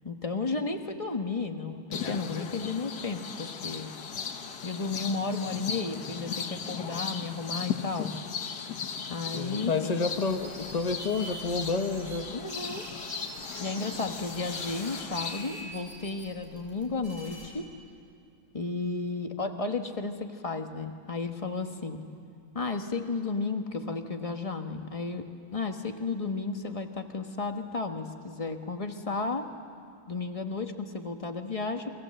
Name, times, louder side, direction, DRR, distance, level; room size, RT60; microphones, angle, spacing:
voice 1, 0.0-3.9 4.6-8.1 9.1-10.0 12.3-12.8 13.6-17.6 18.5-22.0 22.5-25.3 25.5-29.5 30.1-31.9, left 3 dB, 20° left, 5 dB, 1.1 m, -33 dB
sound 1, 1.9-15.4, left 6 dB, 60° left, 1.7 m, -37 dB
voice 2, 9.3-12.3, left 4 dB, 85° left, 6 dB, 0.3 m, -29 dB
sound 2, 10.0-12.2 12.5-17.4, right 1 dB, 35° right, 7.0 m, -44 dB
29.5 x 22.5 x 7.8 m, 2.4 s
omnidirectional pair, 2.2 m